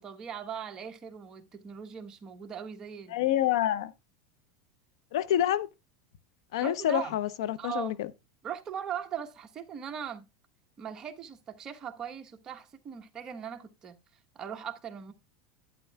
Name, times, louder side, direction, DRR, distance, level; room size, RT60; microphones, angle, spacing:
voice 1, 0.0-3.3 6.6-7.1 7.6-8.0 8.4-10.3 10.8-14.0 14.3-15.1, right 8 dB, 25° right, 1.1 m, -39 dB
voice 2, 3.1-3.9 5.1-5.7 6.5-8.1, left 12 dB, 80° left, 0.7 m, -27 dB
11.5 x 9.0 x 2.3 m
supercardioid pair, 145°, 3 cm